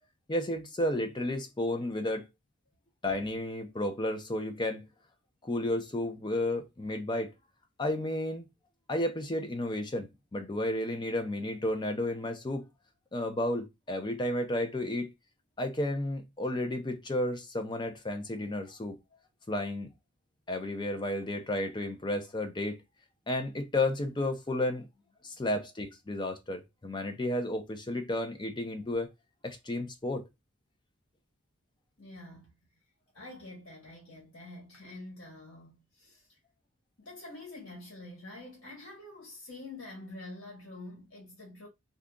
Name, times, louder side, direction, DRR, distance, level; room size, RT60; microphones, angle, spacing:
voice 1, 0.3-2.3 3.0-4.8 5.4-7.3 7.8-8.5 8.9-12.6 13.1-15.1 15.6-19.0 19.5-19.9 20.5-22.8 23.3-24.9 25.2-29.1 29.4-30.2, left 1 dB, 20° left, 0.5 m, -32 dB
voice 2, 32.0-32.5 33.1-36.4 37.0-41.7, left 2 dB, 70° left, 1.3 m, -47 dB
2.7 x 2.4 x 3.6 m
head